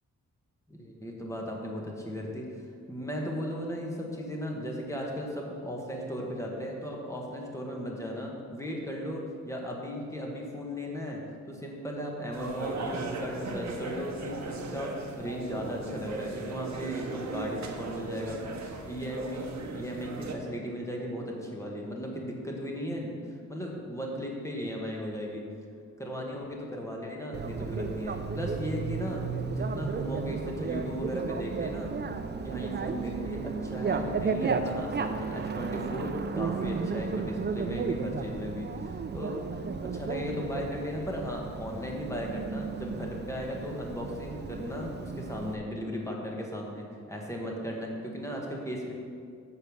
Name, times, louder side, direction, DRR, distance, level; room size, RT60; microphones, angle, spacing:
voice 1, 0.7-2.5 2.9-18.4 18.9-23.1 23.5-25.4 26.0-31.9 32.4-48.9, equal, 10° left, -1 dB, 1.3 m, -36 dB
sound 1, 12.3-20.3, right 3 dB, 60° right, 1.0 m, -38 dB
Bicycle, 27.3-45.5, right 5 dB, 35° right, 0.5 m, -34 dB
8.5 x 6.7 x 6.2 m, 2.3 s
wide cardioid pair, 170°, 31 cm